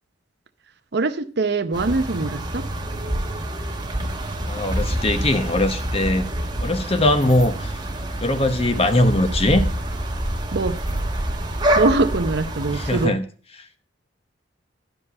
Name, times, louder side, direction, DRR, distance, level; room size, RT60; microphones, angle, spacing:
voice 1, 0.9-2.7 10.5-10.8 11.7-13.2, right 3 dB, 60° right, 0.7 m, -23 dB
sound 1, 1.7-13.1, right 1 dB, 25° right, 1.1 m, -26 dB
voice 2, 4.4-6.3 6.6-7.8 8.2-9.7 12.7-13.2, left 1 dB, 30° left, 1.0 m, -20 dB
11.0 x 5.4 x 6.9 m
head